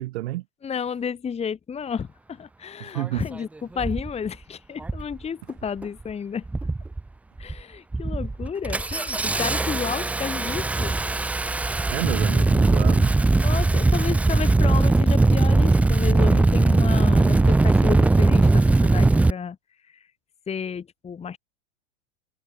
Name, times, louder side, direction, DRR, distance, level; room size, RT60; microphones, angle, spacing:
voice 1, 0.0-0.4 2.8-3.3 11.9-13.1, right 17 dB, 55° right, 2.0 m, -30 dB
voice 2, 0.6-6.4 7.4-11.0 13.4-19.6 19.9-20.1 20.5-21.4, left 7 dB, 15° left, 1.8 m, -32 dB
Engine starting, 3.0-3.1 3.8-4.1 4.8-5.1 5.5-6.0 6.5-7.0 7.4-7.6 7.9-19.3, right 2 dB, 5° right, 0.5 m, -20 dB
figure-of-eight pair, 100°, 38 cm